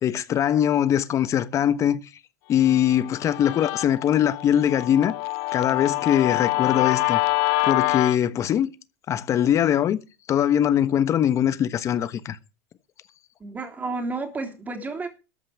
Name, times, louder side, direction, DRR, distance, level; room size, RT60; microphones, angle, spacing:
voice 1, 0.0-2.0 2.5-5.1 5.5-7.2 7.6-8.7 9.1-10.0 10.3-12.4, left 10 dB, 35° left, 1.2 m, -22 dB
Guitar, 2.6-8.2, left 21 dB, 60° left, 0.6 m, -26 dB
voice 2, 13.4-15.1, right 3 dB, 20° right, 3.4 m, -31 dB
13.5 x 5.8 x 8.3 m
supercardioid pair, 115°, 8 cm